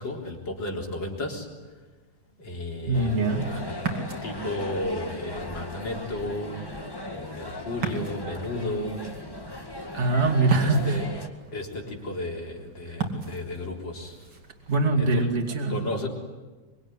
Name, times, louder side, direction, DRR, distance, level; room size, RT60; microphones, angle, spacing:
voice 1, 0.0-1.5 2.4-3.1 3.4-3.6 4.2-6.7 7.1-9.2 10.6-11.1 11.5-14.3 15.0-15.3 15.7-16.1, left 1 dB, 75° left, 1 dB, 4.5 m, -33 dB
Universidad Catolica Andres Bello Caracas. Cafe, 2.9-11.3, left 1 dB, 15° left, 1.8 m, -38 dB
voice 2, 2.9-3.5 9.9-11.0 12.9-13.0 14.7-15.9, right 3 dB, 35° right, 0 dB, 2.9 m, -23 dB
Ocean, 3.8-14.9, right 4 dB, 70° right, 3.4 m, -38 dB
24.5 x 24.0 x 9.9 m, 1.3 s
omnidirectional pair, 2.0 m